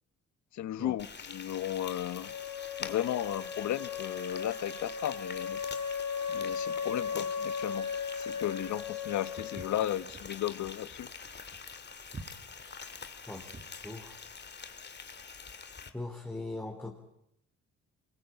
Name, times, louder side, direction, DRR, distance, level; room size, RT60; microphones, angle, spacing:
voice 1, 0.5-2.3 2.8-5.6 6.3-11.1, left 12 dB, 70° left, 1.0 m, -35 dB
Frying (food), 1.0-15.9, left 5 dB, 35° left, 2.3 m, -46 dB
Wind instrument woodwind instrument, 2.2-10.0, left 6 dB, 85° left, 4.9 m, -37 dB
Walk footsteps, 9.4-13.8, right 3 dB, 30° right, 2.4 m, -48 dB
voice 2, 13.8-14.2 15.9-17.0, left 2 dB, 5° left, 3.4 m, -40 dB
23.5 x 22.0 x 8.9 m
cardioid pair, 90°, 30 cm